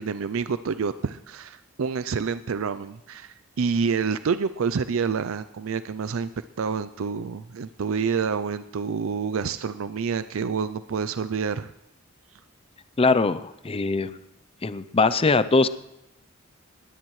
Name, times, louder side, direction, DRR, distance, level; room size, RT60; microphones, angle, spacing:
voice 1, 0.0-6.3 6.6-11.7, right 5 dB, 70° right, 13 dB, 0.5 m, -28 dB
voice 2, 13.0-14.2 14.6-15.7, left 3 dB, 30° left, 14 dB, 0.5 m, -21 dB
21.0 x 16.5 x 3.2 m, 0.88 s
head